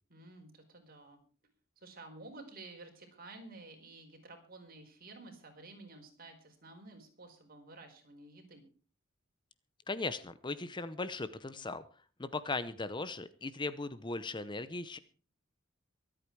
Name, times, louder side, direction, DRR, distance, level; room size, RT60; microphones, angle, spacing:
voice 1, 0.1-1.2 1.8-8.7, right 2 dB, 50° right, 4 dB, 4.5 m, -52 dB
voice 2, 9.9-11.8 12.2-15.0, left 3 dB, 25° left, 14 dB, 0.8 m, -38 dB
24.0 x 8.8 x 4.7 m, 0.38 s
head